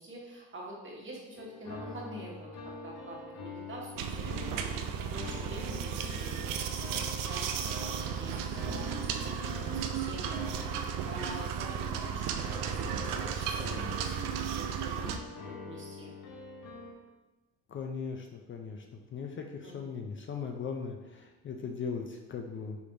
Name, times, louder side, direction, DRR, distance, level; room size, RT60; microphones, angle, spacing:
voice 1, 0.0-4.2 4.5-6.7 7.0-16.1 19.6-19.9, right 1 dB, 35° right, -3 dB, 1.4 m, -46 dB
sound 1, 1.4-16.9, left 2 dB, 65° left, 0.9 m, -45 dB
sound 2, 4.0-15.2, right 7 dB, 70° right, 0.5 m, -34 dB
voice 2, 17.7-22.8, left 5 dB, 35° left, 3 dB, 0.5 m, -39 dB
4.8 x 3.3 x 2.6 m, 1.1 s
supercardioid pair, 70°, 34 cm